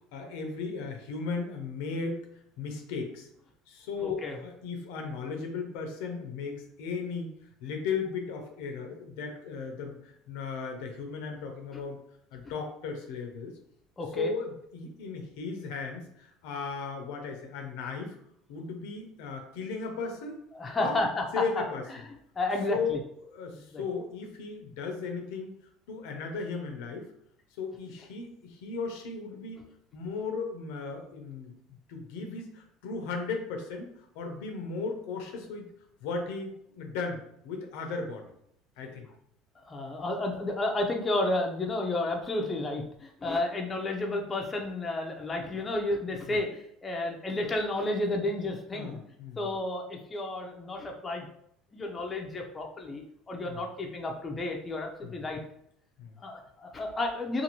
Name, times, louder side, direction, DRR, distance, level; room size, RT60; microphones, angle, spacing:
voice 1, 0.1-2.2 2.6-3.3 3.7-7.3 7.6-12.0 12.3-13.5 14.1-18.2 18.5-20.3 20.8-21.0 21.3-21.8 22.7-22.9 23.2-25.5 25.9-27.1 27.6-29.6 29.9-31.5 31.9-33.9 34.2-35.7 36.0-37.2 37.4-38.2 38.8-39.1 46.3-46.4 48.7-49.4 53.5-53.6 56.0-56.1, left 4 dB, 80° left, 4 dB, 0.6 m, -36 dB
voice 2, 4.0-4.4 11.7-11.8 14.0-14.3 20.5-21.6 21.9-22.0 22.4-23.0 23.5-23.8 39.7-49.0 49.4-51.3 51.7-55.4 56.2-57.4, left 2 dB, 25° left, 1 dB, 0.5 m, -32 dB
2.6 x 2.5 x 2.9 m, 0.71 s
supercardioid pair, 100°, 0 cm